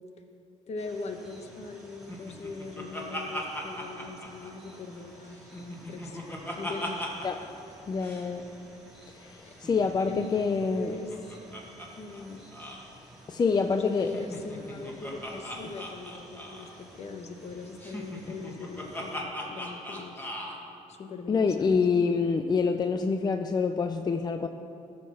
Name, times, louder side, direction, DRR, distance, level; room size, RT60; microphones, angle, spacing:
voice 1, 0.7-6.2 6.5-7.0 9.4-9.5 10.1-11.1 12.0-12.4 13.6-20.3 20.9-21.8, left 3 dB, 50° left, 6 dB, 1.1 m, -40 dB
sound 1, 0.8-19.2, equal, 5° right, 2.2 m, -53 dB
Laughter, 2.1-5.0 5.4-7.5 7.7-7.8 8.0-8.3 9.5-11.9 12.1-12.2 12.5-12.8 14.0-16.8 17.8-20.6, equal, 15° left, 1.9 m, -39 dB
voice 2, 7.9-8.5 9.1-10.9 13.3-14.1 21.3-24.5, left 5 dB, 30° left, 7 dB, 0.4 m, -26 dB
13.5 x 6.4 x 5.7 m, 2.8 s
cardioid pair, 95°, 14 cm